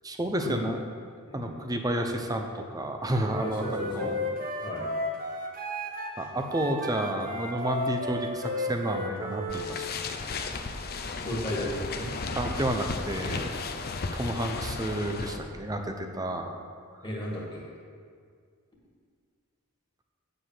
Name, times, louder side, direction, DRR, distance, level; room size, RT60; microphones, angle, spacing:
voice 1, 0.0-0.8 1.3-4.2 6.2-10.4 12.4-13.5 14.1-16.5, right 1 dB, 15° right, 4 dB, 0.7 m, -31 dB
voice 2, 1.3-1.6 3.4-4.1 4.6-4.9 11.0-12.1 17.0-17.7, left 1 dB, 20° left, -5 dB, 1.9 m, -34 dB
Wind instrument woodwind instrument, 3.2-9.7, left 1 dB, 40° right, 1.2 m, -33 dB
sound 1, 9.5-15.4, left 4 dB, 45° left, 0.6 m, -34 dB
8.3 x 5.2 x 7.5 m, 2.1 s
head